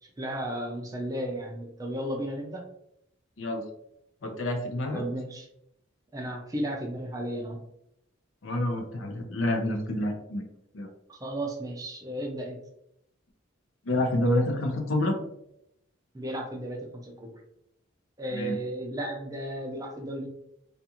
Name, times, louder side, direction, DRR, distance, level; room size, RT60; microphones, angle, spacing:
voice 1, 0.0-2.6 4.9-5.5 6.1-7.6 11.1-12.6 16.1-17.3 18.2-20.3, right 1 dB, 15° right, 2 dB, 0.4 m, -34 dB
voice 2, 4.2-5.0 8.4-10.4 10.7-10.9 13.8-15.2 18.3-18.5, left 1 dB, 75° left, 4 dB, 0.6 m, -28 dB
2.4 x 2.4 x 2.8 m, 0.77 s
head